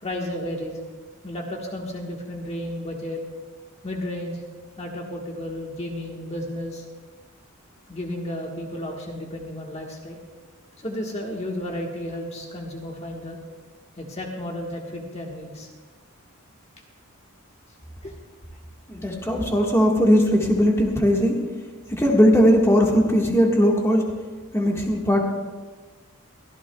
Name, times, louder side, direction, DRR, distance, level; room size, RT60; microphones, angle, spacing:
voice 1, 0.0-0.8 1.2-3.2 3.8-4.4 4.8-6.8 7.9-10.2 10.8-13.4 14.0-15.7 18.0-18.2 19.2-19.3, left 1 dB, 30° left, 0 dB, 1.4 m, -33 dB
voice 2, 18.9-21.4 21.9-24.0 24.5-25.2, equal, 10° left, -1 dB, 1.5 m, -19 dB
24.0 x 14.5 x 2.3 m, 1.3 s
head